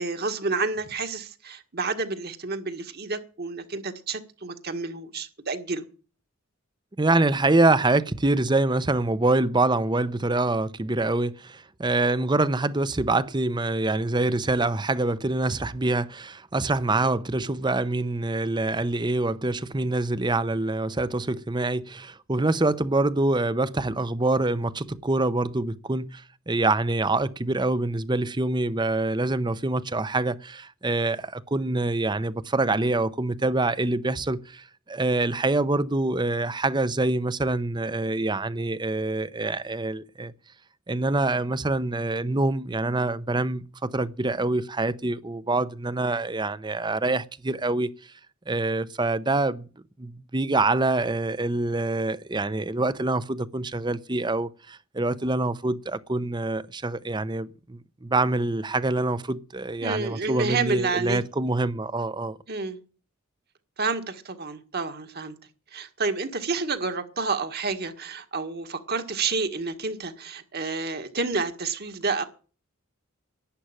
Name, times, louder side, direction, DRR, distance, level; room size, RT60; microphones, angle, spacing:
voice 1, 0.0-5.8 59.8-61.2 62.5-62.8 63.8-65.3 65.7-72.2, right 4 dB, 50° right, 1.8 m, -29 dB
voice 2, 7.0-40.3 40.9-47.9 48.5-49.7 50.0-62.4, right 2 dB, 20° right, 0.7 m, -25 dB
11.5 x 9.3 x 9.0 m
head